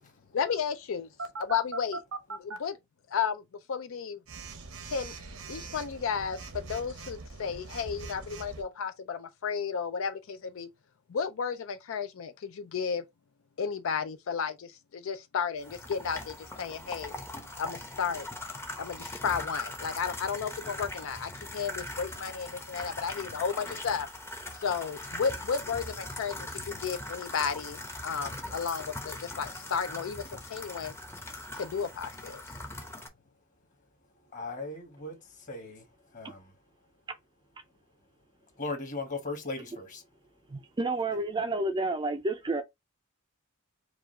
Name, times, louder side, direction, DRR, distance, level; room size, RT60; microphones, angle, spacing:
voice 1, 0.3-1.1 1.4-2.0 2.3-2.8 3.1-3.4 3.7-4.2 4.8-5.2 5.5-10.7 11.1-13.0 13.6-17.1 17.6-18.3 18.8-24.1 24.6-30.9 31.5-32.4, left 6 dB, 65° left, 0.4 m, -33 dB
Telephone, 1.2-2.6 4.3-8.6, right 3 dB, 75° right, 0.8 m, -41 dB
sound 1, 15.6-33.1, left 2 dB, 10° left, 0.7 m, -41 dB
voice 2, 34.3-35.9 36.1-36.5 38.6-40.0, left 3 dB, 35° left, 1.4 m, -38 dB
voice 3, 40.5-42.6, right 2 dB, 20° right, 0.4 m, -30 dB
4.8 x 2.4 x 3.6 m
head